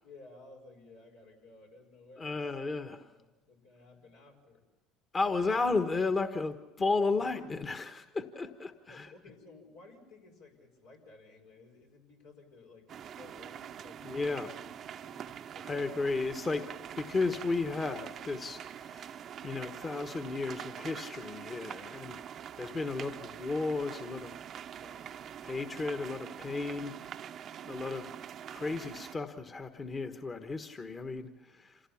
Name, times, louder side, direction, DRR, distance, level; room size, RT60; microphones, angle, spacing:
voice 1, 0.0-2.4 3.0-4.6 8.9-14.7 15.0-15.8 24.8-25.4, left 3 dB, 85° left, 0 dB, 5.0 m, -56 dB
voice 2, 2.2-3.1 5.1-9.1 14.0-14.5 15.6-16.7 17.0-19.2 19.4-22.2 22.6-24.3 25.4-26.9 27.6-28.1 28.5-31.8, left 3 dB, 30° left, 7 dB, 1.3 m, -33 dB
sound 1, 12.9-29.2, right 9 dB, 50° right, 0.7 m, -45 dB
27.0 x 17.0 x 7.2 m, 1.2 s
hypercardioid pair, 80°, 0 cm